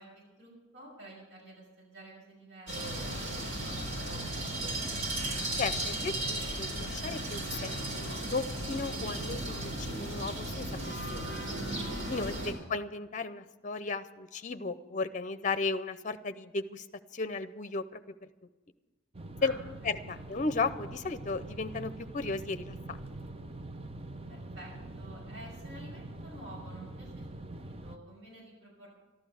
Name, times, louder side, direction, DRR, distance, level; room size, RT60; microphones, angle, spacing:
voice 1, 0.0-3.5 3.8-4.6 12.2-12.4 19.4-19.6 20.1-20.2 24.3-28.9, right 1 dB, 70° right, -3 dB, 5.8 m, -51 dB
sound 1, 2.7-12.5, right 1 dB, 85° right, 3.9 m, -35 dB
voice 2, 5.5-11.4 12.1-16.9 17.1-18.0 19.4-19.5 19.8-23.0, left 3 dB, 40° left, 12 dB, 0.6 m, -35 dB
sound 2, 19.1-28.0, right 2 dB, 30° right, 0.6 m, -44 dB
13.0 x 12.5 x 6.4 m, 1.2 s
head